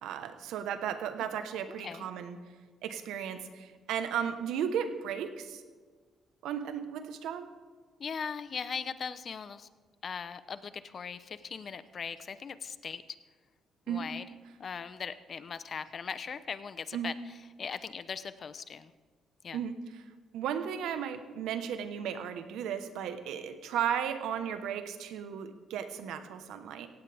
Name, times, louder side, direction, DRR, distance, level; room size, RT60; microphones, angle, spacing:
voice 1, 0.0-2.4 2.8-5.6 6.4-7.5 13.9-14.1 16.9-17.1 19.5-20.0 20.3-26.9, right 8 dB, 85° right, 9 dB, 1.2 m, -35 dB
voice 2, 8.0-9.7 10.0-13.0 13.9-14.2 14.6-17.1 17.6-18.9 19.4-19.6, left 6 dB, 50° left, 13 dB, 0.8 m, -39 dB
17.0 x 16.5 x 3.5 m, 1.5 s
cardioid pair, 90°, 0 cm